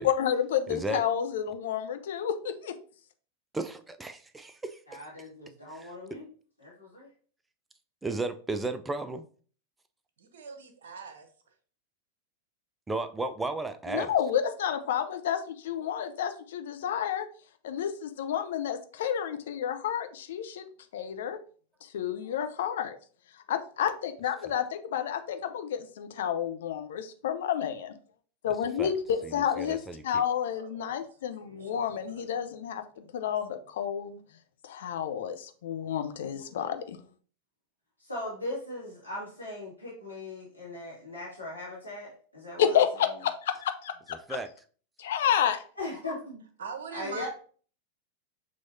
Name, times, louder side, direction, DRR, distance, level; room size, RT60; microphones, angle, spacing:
voice 1, 0.0-2.7 13.9-15.4 15.6-17.3 17.6-20.6 20.9-21.4 21.8-23.0 23.5-28.0 28.4-34.2 34.6-37.0 42.6-43.9 45.0-45.6, left 9 dB, 60° left, 8 dB, 0.5 m, -30 dB
voice 2, 0.7-1.0 3.5-4.8 5.7-6.2 8.0-9.3 12.9-14.1 28.5-28.9 29.2-30.2 44.3-44.5, right 2 dB, 10° right, 10 dB, 0.4 m, -34 dB
voice 3, 4.9-6.3 6.6-7.1 38.0-42.7 45.8-46.4 46.9-47.3, left 2 dB, 90° left, -8 dB, 1.8 m, -39 dB
voice 4, 10.3-11.5 30.4-30.9 31.4-32.2 46.6-47.3, right 5 dB, 60° right, 6 dB, 0.8 m, -43 dB
6.2 x 3.0 x 2.7 m, 0.43 s
figure-of-eight pair, 90°, 0 cm